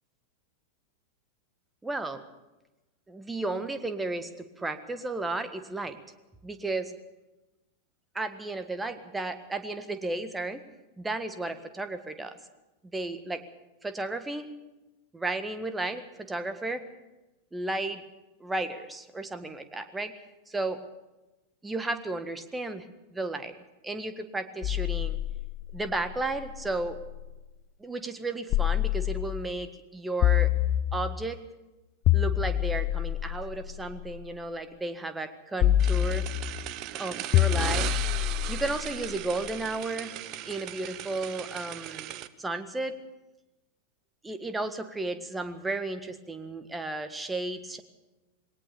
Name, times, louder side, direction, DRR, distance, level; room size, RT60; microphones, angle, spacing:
voice 1, 1.8-2.2 3.1-4.3 4.6-6.0 6.4-6.9 8.1-10.6 11.0-12.4 12.9-13.4 13.8-14.5 15.1-16.8 17.5-18.0 18.4-20.1 20.5-20.8 21.6-22.8 23.1-23.5 23.8-25.2 25.7-27.0 27.8-30.5 30.9-31.4 32.1-36.2 36.9-37.9 38.5-40.2 40.4-42.1 42.4-42.9 44.2-47.8, right 2 dB, 10° right, 9 dB, 1.7 m, -33 dB
sound 1, 24.6-27.4 28.5-29.6 30.2-31.3 32.1-34.3 35.6-36.7 37.3-39.5, left 13 dB, 35° left, 0.6 m, -27 dB
sound 2, 35.8-42.3, right 13 dB, 40° right, 0.9 m, -37 dB
21.0 x 18.5 x 6.9 m, 1.0 s
figure-of-eight pair, 90°, 0 cm